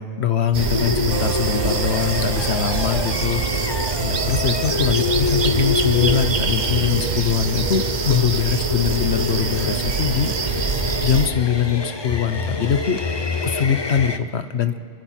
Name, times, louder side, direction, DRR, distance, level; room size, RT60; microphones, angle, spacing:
voice 1, 0.0-10.7 11.0-13.0 13.4-14.8, left 8 dB, 70° left, 11 dB, 1.2 m, -22 dB
sound 1, 0.5-11.3, right 6 dB, 45° right, 0.8 m, -25 dB
sound 2, 0.6-14.2, left 4 dB, 25° left, 0.8 m, -27 dB
sound 3, 1.1-10.4, right 6 dB, 80° right, 1.4 m, -36 dB
29.0 x 23.5 x 4.5 m, 2.2 s
omnidirectional pair, 1.2 m